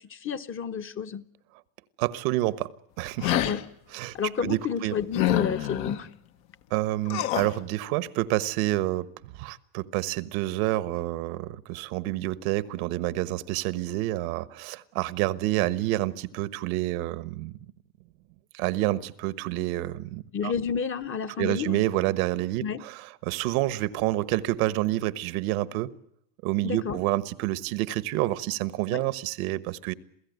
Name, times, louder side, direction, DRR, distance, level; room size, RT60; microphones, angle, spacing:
voice 1, 0.1-1.2 3.4-3.7 4.1-6.1 20.3-21.8 22.6-22.8 26.6-27.0 28.9-29.0, left 7 dB, 30° left, 1.0 m, -30 dB
voice 2, 2.0-2.7 3.0-3.4 3.9-4.1 4.4-4.9 6.7-17.5 18.5-20.5 21.4-25.9 26.4-29.9, right 16 dB, 80° right, 1.4 m, -28 dB
sound 1, 3.2-3.6 5.1-6.0 7.1-7.5, left 12 dB, 75° left, 1.8 m, -26 dB
27.5 x 16.5 x 9.4 m
cardioid pair, 135°, 41 cm